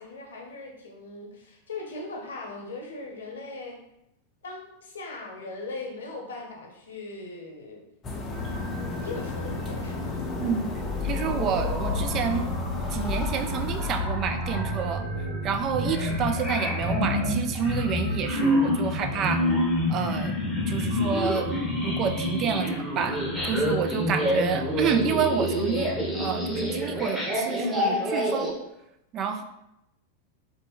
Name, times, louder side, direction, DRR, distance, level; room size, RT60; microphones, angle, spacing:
voice 1, 0.0-3.8 4.4-7.8 9.0-10.1 24.1-24.6, left 3 dB, 65° left, 0 dB, 0.8 m, -39 dB
sound 1, 8.0-14.0, left 2 dB, 25° left, 0.5 m, -35 dB
sound 2, 8.3-27.0, left 2 dB, 75° right, 1.2 m, -37 dB
voice 2, 10.4-10.7 11.0-12.5 12.9-15.1 15.4-19.4 19.9-20.4 20.7-21.5 21.8-23.2 23.4-28.5 29.1-29.4, right 7 dB, 35° right, 7 dB, 0.3 m, -29 dB
sound 3, 10.8-28.5, left 1 dB, 5° right, 1.0 m, -28 dB
3.2 x 2.9 x 3.0 m, 0.84 s
figure-of-eight pair, 90°, 0 cm